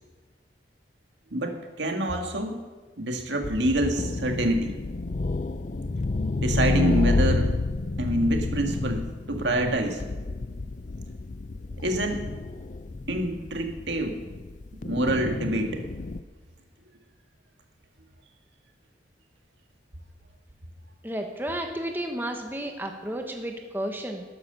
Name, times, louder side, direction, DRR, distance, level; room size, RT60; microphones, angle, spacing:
voice 1, 1.3-2.6 3.0-4.7 6.4-7.5 8.0-10.0 11.8-12.2 13.1-14.2 14.8-15.8, right 1 dB, 75° right, 3 dB, 1.9 m, -26 dB
sound 1, 3.4-16.2, left 2 dB, 40° left, 0.5 m, -29 dB
voice 2, 21.0-24.2, right 1 dB, 10° right, 3 dB, 1.1 m, -32 dB
12.5 x 11.0 x 6.8 m, 1.4 s
head